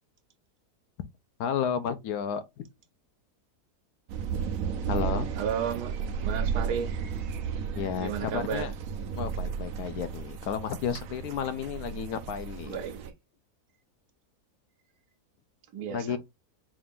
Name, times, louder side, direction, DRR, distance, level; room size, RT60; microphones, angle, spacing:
voice 1, 1.4-2.7 4.9-5.3 7.8-8.7 9.1-12.8 15.9-16.2, left 7 dB, 75° left, 1.1 m, -32 dB
sound 1, 4.1-13.1, right 7 dB, 70° right, 1.0 m, -34 dB
voice 2, 5.4-5.9 6.2-7.0 8.0-8.7 12.6-13.1 15.7-16.2, right 8 dB, 85° right, 1.3 m, -33 dB
4.9 x 2.5 x 3.5 m
omnidirectional pair, 1.7 m